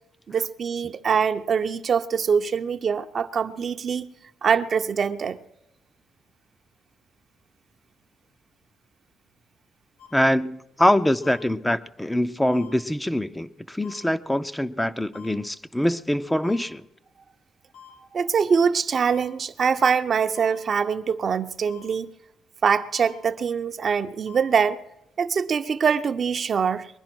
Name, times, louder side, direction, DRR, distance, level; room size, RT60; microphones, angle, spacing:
voice 1, 0.3-4.1 4.4-5.4 18.1-22.1 22.6-24.8 25.2-26.9, right 6 dB, 50° right, 0.6 m, -23 dB
sound 1, 10.0-10.1 11.2-11.4 12.5-12.7 13.8-14.0 15.1-15.3 16.4-16.6 17.7-17.9 19.0-19.2 20.3-20.5 21.6-21.8 23.0-23.1 24.3-24.4, left 8 dB, 75° left, 6.5 m, -46 dB
voice 2, 10.1-16.8, left 1 dB, 5° left, 0.5 m, -24 dB
21.5 x 10.5 x 6.1 m
cardioid pair, 90°, 0 cm